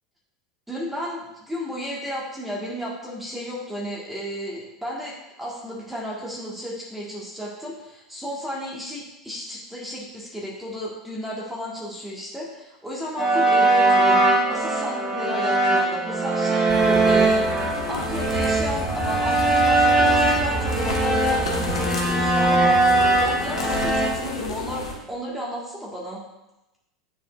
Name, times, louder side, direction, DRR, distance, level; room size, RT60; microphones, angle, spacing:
voice 1, 0.7-26.2, equal, 5° right, -5 dB, 1.6 m, -33 dB
sound 1, 13.2-24.1, right 2 dB, 20° right, 1.2 m, -20 dB
sound 2, 16.7-24.9, left 4 dB, 75° left, 1.0 m, -32 dB
sound 3, 18.3-23.3, right 2 dB, 45° right, 1.8 m, -32 dB
9.3 x 4.1 x 2.4 m, 0.94 s
figure-of-eight pair, 85°, 3 cm